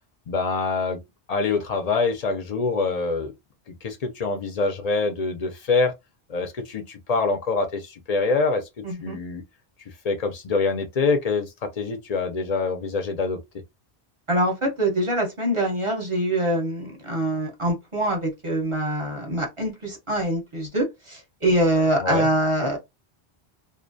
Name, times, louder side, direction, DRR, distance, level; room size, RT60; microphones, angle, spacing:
voice 1, 0.3-1.0 1.3-3.3 3.7-5.9 6.3-8.7 9.0-9.4 10.0-13.4 22.0-22.3, left 4 dB, 55° left, 0.4 m, -25 dB
voice 2, 8.8-9.2 14.3-22.8, right 1 dB, 35° right, 0.7 m, -24 dB
2.5 x 2.1 x 2.5 m
omnidirectional pair, 1.1 m